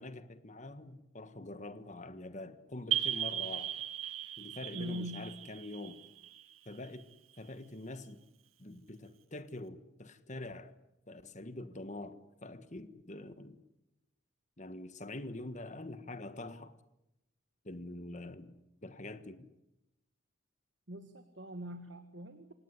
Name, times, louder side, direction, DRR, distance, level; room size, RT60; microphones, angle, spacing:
voice 1, 0.0-3.7 4.4-6.0 6.6-7.1 7.4-8.2 8.6-10.7 11.1-13.6 14.6-16.7 17.6-18.5 18.8-19.5, left 2 dB, 35° left, 1.5 m, -45 dB
sound 1, 2.9-7.3, right 11 dB, 80° right, 1.7 m, -37 dB
voice 2, 4.7-5.3 20.9-22.5, equal, 55° right, 1.7 m, -42 dB
27.5 x 18.0 x 9.8 m
head